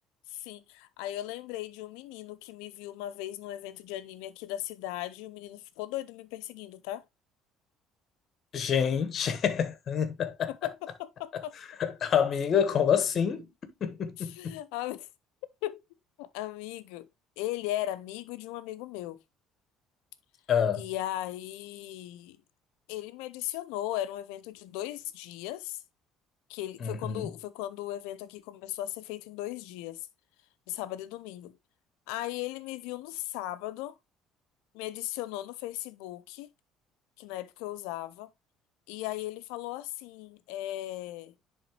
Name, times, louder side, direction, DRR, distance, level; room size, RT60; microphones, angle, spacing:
voice 1, 0.3-7.0 10.5-10.7 11.0-11.5 14.2-15.1 15.6-15.8 16.2-17.1 17.4-19.2 20.8-22.4 22.9-25.8 26.5-30.0 30.7-31.6 32.1-33.9 34.7-36.5 37.2-38.3 38.9-41.3, left 14 dB, 80° left, 0.5 m, -37 dB
voice 2, 8.5-10.5 11.3-11.4 11.8-13.5 13.8-14.6 20.5-20.8 26.8-27.3, left 8 dB, 50° left, 1.2 m, -27 dB
10.0 x 3.7 x 3.0 m
supercardioid pair, 75°, 0 cm